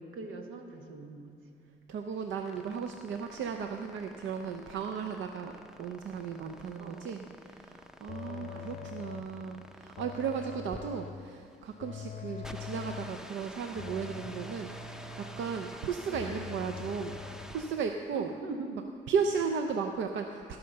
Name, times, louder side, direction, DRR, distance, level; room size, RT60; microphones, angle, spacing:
voice 1, 0.0-1.3 6.8-7.3 8.3-8.9 16.1-16.3 18.1-18.9 19.7-19.9, right 3 dB, 90° right, 4 dB, 1.2 m, -42 dB
voice 2, 1.9-5.5 5.8-15.1 15.4-18.3 19.1-20.6, right 6 dB, 70° right, 5 dB, 0.6 m, -35 dB
sound 1, 2.1-18.0, equal, 5° right, 0.5 m, -49 dB
sound 2, 8.1-9.4 10.0-11.3 11.8-13.2 13.7-15.7 16.1-17.5, left 6 dB, 40° left, 0.6 m, -43 dB
17.0 x 5.7 x 6.5 m, 2.4 s
cardioid pair, 90°, 20 cm